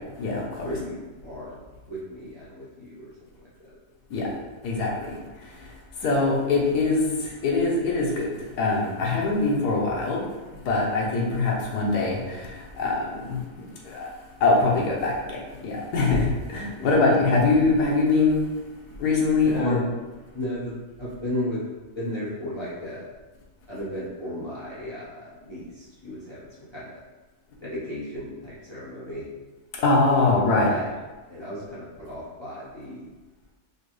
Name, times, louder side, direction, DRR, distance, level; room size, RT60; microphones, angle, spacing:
voice 1, 0.6-1.6 1.9-3.1 16.8-17.0 19.4-19.8 20.3-21.6 21.9-23.1 23.7-27.0 27.6-29.3 30.2-30.9 31.3-33.1, equal, 20° left, -10 dB, 0.9 m, -34 dB
voice 2, 4.6-5.2 6.0-7.1 7.4-8.3 8.6-10.2 10.7-12.5 12.8-13.4 13.9-14.1 14.4-15.4 15.6-18.4 19.0-19.8 29.8-30.7, left 3 dB, 85° left, -3 dB, 1.4 m, -22 dB
4.9 x 2.3 x 3.1 m, 1.2 s
omnidirectional pair, 1.6 m